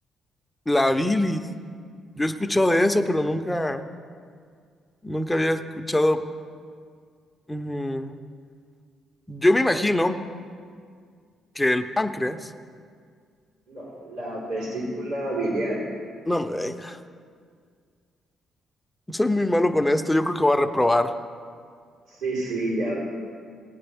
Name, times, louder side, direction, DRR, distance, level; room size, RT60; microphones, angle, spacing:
voice 1, 0.7-1.4 2.2-3.8 5.0-6.2 7.5-8.2 9.3-10.2 11.6-12.5 16.3-17.0 19.1-21.1, left 1 dB, 10° left, 7 dB, 0.6 m, -23 dB
voice 2, 13.7-15.8 22.1-22.9, right 1 dB, 85° right, -8 dB, 3.9 m, -29 dB
19.0 x 9.2 x 3.5 m, 2.1 s
cardioid pair, 90°, 0 cm